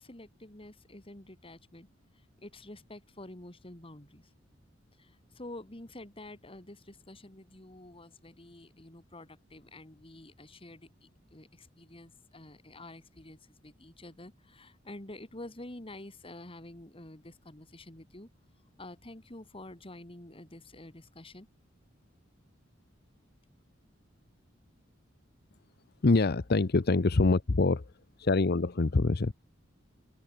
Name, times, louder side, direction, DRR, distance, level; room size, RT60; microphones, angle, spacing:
voice 1, 0.0-1.9 2.1-4.3 5.0-18.3 18.8-21.5, left 1 dB, 30° left, 2.5 m, -48 dB
voice 2, 26.0-27.9 28.2-29.3, left 3 dB, 55° left, 0.7 m, -25 dB
head